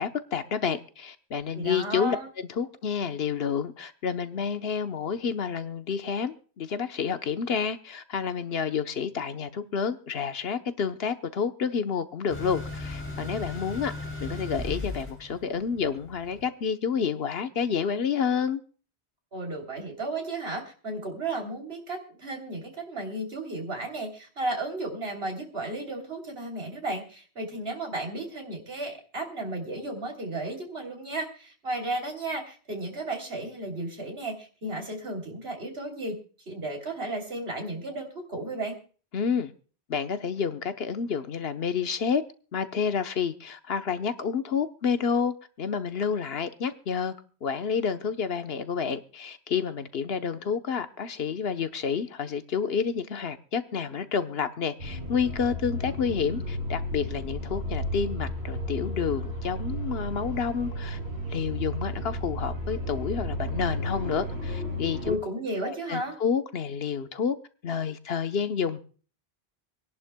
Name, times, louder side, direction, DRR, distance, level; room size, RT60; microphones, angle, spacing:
voice 1, 0.0-2.2 2.5-13.9 14.2-18.6 39.1-39.5 39.9-42.2 42.5-47.1 47.4-61.0 61.3-65.2 65.6-67.4 67.6-68.8, left 6 dB, 70° left, 1.1 m, -29 dB
voice 2, 1.5-2.3 19.3-36.2 36.5-38.8 65.0-66.2, right 2 dB, 70° right, 3.5 m, -34 dB
sound 1, 12.3-16.4, left 2 dB, 10° left, 3.0 m, -37 dB
sound 2, 54.8-65.2, left 1 dB, 90° right, 5.1 m, -33 dB
26.5 x 11.0 x 2.2 m
omnidirectional pair, 1.1 m